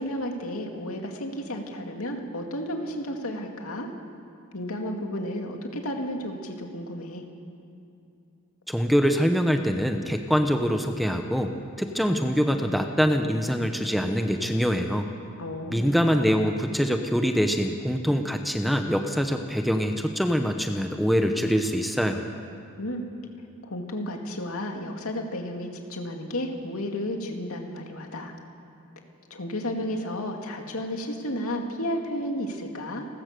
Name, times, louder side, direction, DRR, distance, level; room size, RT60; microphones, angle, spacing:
voice 1, 0.0-3.9 4.5-7.2 15.4-16.0 22.8-23.0 23.6-28.3 29.3-33.1, left 1 dB, 75° left, 2 dB, 2.5 m, -32 dB
voice 2, 8.7-15.1 15.7-22.2, equal, ahead, 5 dB, 0.9 m, -24 dB
30.0 x 14.0 x 6.8 m, 2.6 s
head